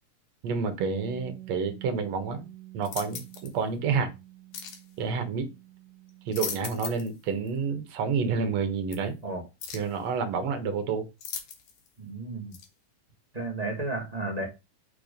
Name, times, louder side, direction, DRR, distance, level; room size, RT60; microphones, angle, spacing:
voice 1, 0.4-2.5 2.7-4.1 5.0-5.5 6.3-9.2 9.7-11.1, right 5 dB, 60° right, 2.2 m, -29 dB
Bass guitar, 0.8-7.1, right 18 dB, 80° right, 2.1 m, -47 dB
sound 1, 2.8-3.5 4.5-4.9 6.1-7.2 7.5-7.6 8.9-9.0 9.6-10.0 11.2-11.9 12.5-12.7, left 7 dB, 90° left, 2.9 m, -38 dB
voice 2, 12.0-12.5 13.3-14.5, right 2 dB, 20° right, 1.1 m, -33 dB
5.9 x 4.6 x 5.2 m
omnidirectional pair, 3.7 m